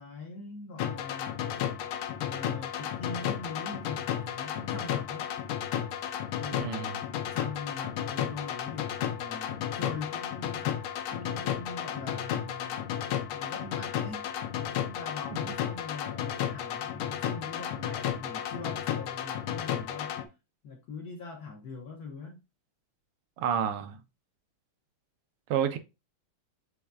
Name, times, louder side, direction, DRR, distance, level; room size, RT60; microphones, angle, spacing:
voice 1, 0.0-1.5 2.2-5.3 6.4-12.9 13.3-14.3 14.6-20.2 20.6-22.4, left 4 dB, 65° left, 1.0 m, -42 dB
sound 1, 0.8-20.3, left 10 dB, 80° left, 1.5 m, -33 dB
voice 2, 6.6-7.0 23.4-24.0 25.5-25.8, right 8 dB, 90° right, 1.6 m, -29 dB
6.9 x 3.1 x 2.4 m
omnidirectional pair, 2.4 m